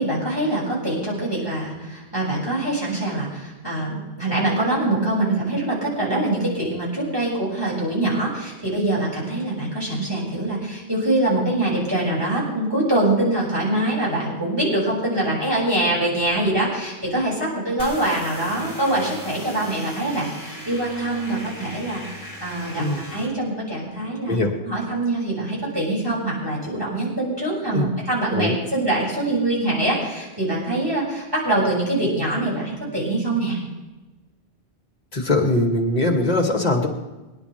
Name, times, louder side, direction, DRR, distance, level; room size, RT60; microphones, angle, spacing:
voice 1, 0.0-24.4 24.6-33.6, right 1 dB, 20° right, -6 dB, 6.5 m, -24 dB
sound 1, 17.8-23.3, equal, 20° left, 4.1 m, -38 dB
voice 2, 35.1-36.9, left 2 dB, 40° left, 1 dB, 2.5 m, -21 dB
25.0 x 11.0 x 3.5 m, 1.1 s
omnidirectional pair, 1.1 m